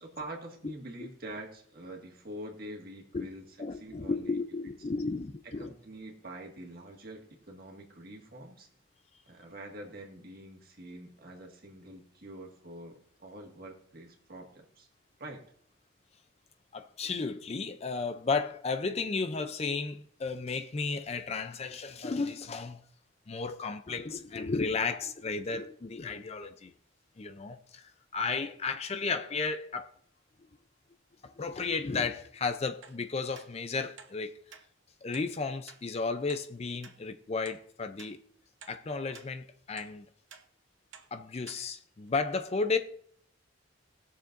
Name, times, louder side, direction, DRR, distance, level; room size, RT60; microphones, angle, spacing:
voice 1, 0.0-3.4 3.7-4.4 5.6-8.7 9.2-14.9 15.2-15.4, right 1 dB, 45° right, 1.8 m, -45 dB
voice 2, 3.6-5.7 16.7-22.8 23.3-26.7 27.2-29.9 31.2-34.4 35.0-38.2 38.7-40.0 41.1-42.8, left 4 dB, 30° left, 0.4 m, -33 dB
sound 1, 32.8-33.0 33.3-33.5 34.0-34.1 34.5-34.6 35.1-35.3 35.7-35.8 36.3-36.4 36.8-37.0 37.5-37.6 38.0-38.1 38.6-38.8 39.1-39.3 39.8-39.9 40.3-40.4 40.9-41.1 41.5-41.6 42.1-42.2, right 6 dB, 65° right, 1.0 m, -51 dB
19.5 x 7.0 x 2.6 m
head